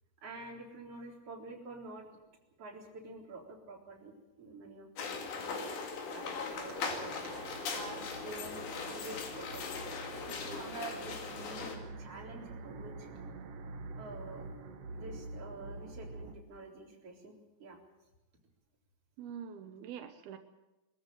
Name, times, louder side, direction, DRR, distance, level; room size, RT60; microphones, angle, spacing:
voice 1, 0.2-2.1 2.6-5.7 6.1-7.3 7.7-9.8 10.6-13.1 14.0-14.5 14.9-17.3 17.6-17.8, right 3 dB, 40° right, -1 dB, 4.7 m, -48 dB
sound 1, 5.0-11.8, left 5 dB, 85° left, 4.2 m, -39 dB
sound 2, 5.8-16.4, right 3 dB, 55° right, 1.9 m, -47 dB
voice 2, 10.3-10.7 19.2-20.4, right 8 dB, 85° right, 7 dB, 3.0 m, -45 dB
22.5 x 14.0 x 9.1 m, 1.0 s
omnidirectional pair, 4.3 m